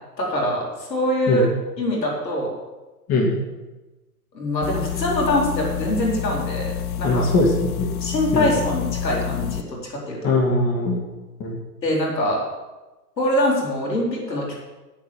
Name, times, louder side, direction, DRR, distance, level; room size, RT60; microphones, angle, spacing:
voice 1, 0.2-1.5 1.8-2.5 4.3-6.7 7.0-7.3 8.0-10.3 11.8-12.4 13.2-14.5, left 1 dB, 85° left, -2 dB, 4.3 m, -23 dB
sound 1, 4.6-9.6, left 9 dB, 60° left, 0.8 m, -28 dB
voice 2, 7.0-7.9 8.3-8.5 10.2-11.0 11.4-11.6, left 2 dB, 30° left, 0 dB, 2.5 m, -20 dB
9.8 x 8.5 x 7.3 m, 1.1 s
hypercardioid pair, 115°, 49 cm